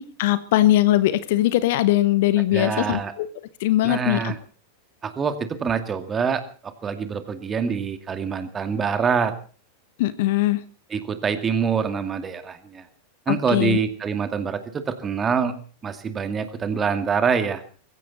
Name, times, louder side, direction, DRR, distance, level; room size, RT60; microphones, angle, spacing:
voice 1, 0.2-3.3 3.6-4.3 10.0-10.6 13.3-13.8, left 15 dB, 50° left, 15 dB, 1.1 m, -20 dB
voice 2, 2.5-3.1 3.8-4.4 5.0-9.3 10.9-12.9 13.3-15.5 15.8-17.6, right 6 dB, 20° right, 9 dB, 2.2 m, -25 dB
21.5 x 16.0 x 4.2 m, 0.39 s
figure-of-eight pair, 90°, 0 cm